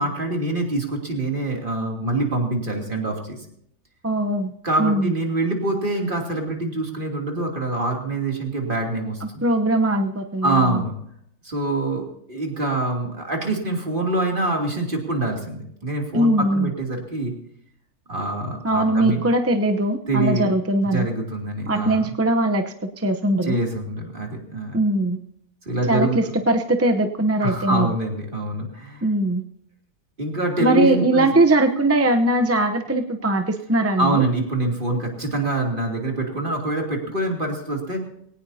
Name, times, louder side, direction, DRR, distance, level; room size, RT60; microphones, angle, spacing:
voice 1, 0.0-3.5 4.6-9.4 10.4-11.0 11.4-17.3 18.1-19.2 20.1-20.5 20.9-22.1 23.4-24.8 25.6-26.4 27.4-29.1 30.2-31.3 34.0-38.0, right 2 dB, 35° right, 0 dB, 3.1 m, -25 dB
voice 2, 4.0-4.5 4.8-5.1 9.2-10.8 16.1-16.7 18.6-21.1 21.7-23.6 24.7-25.2 25.9-27.9 29.0-29.4 30.6-34.2, right 1 dB, 15° right, 5 dB, 0.5 m, -20 dB
21.5 x 18.0 x 2.8 m, 0.70 s
omnidirectional pair, 1.6 m